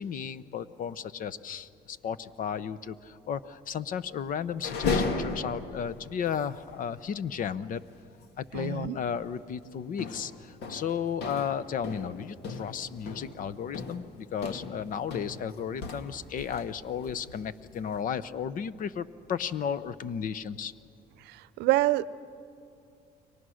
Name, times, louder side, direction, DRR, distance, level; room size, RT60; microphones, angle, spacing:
voice 1, 0.0-7.8 8.4-20.7, left 7 dB, 55° left, 16 dB, 0.8 m, -34 dB
sound 1, 4.5-5.9 6.3-6.4 6.7-6.9 8.5-8.8 9.1-9.4 10.0-16.7 17.0-18.0, left 4 dB, 80° left, 2.0 m, -36 dB
voice 2, 8.5-9.0 21.2-22.1, right 17 dB, 85° right, 17 dB, 0.6 m, -27 dB
30.0 x 23.0 x 6.4 m, 2.6 s
cardioid pair, 110°, 17 cm